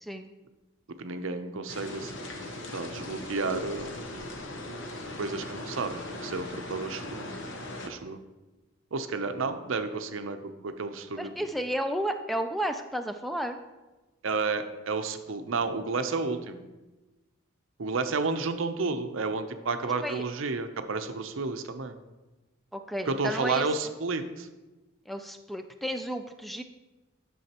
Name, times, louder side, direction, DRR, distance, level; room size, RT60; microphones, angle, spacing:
voice 1, 0.0-0.3 11.2-13.6 19.8-20.2 22.7-23.7 25.1-26.6, equal, ahead, 7 dB, 0.3 m, -32 dB
voice 2, 1.0-2.1 2.7-4.0 5.2-7.3 7.8-8.2 8.9-10.4 10.6-11.5 14.2-16.7 17.8-22.0 23.1-24.5, right 4 dB, 65° right, 8 dB, 0.6 m, -31 dB
sound 1, 1.7-7.9, left 1 dB, 60° left, 0.9 m, -39 dB
11.0 x 6.3 x 2.9 m, 1.1 s
head